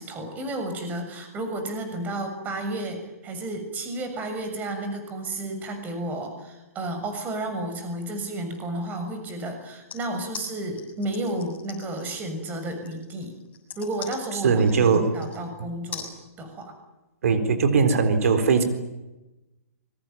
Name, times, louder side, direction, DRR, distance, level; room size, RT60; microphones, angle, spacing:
voice 1, 0.0-13.3 13.8-16.1 16.4-16.7, right 1 dB, 20° right, 6 dB, 6.7 m, -32 dB
sound 1, 9.9-15.5 15.9-16.1, left 7 dB, 15° left, 7.3 m, -41 dB
voice 2, 14.4-15.1 17.2-18.6, right 5 dB, 70° right, 9 dB, 4.2 m, -20 dB
25.0 x 23.0 x 9.3 m, 1.0 s
hypercardioid pair, 135°, 8 cm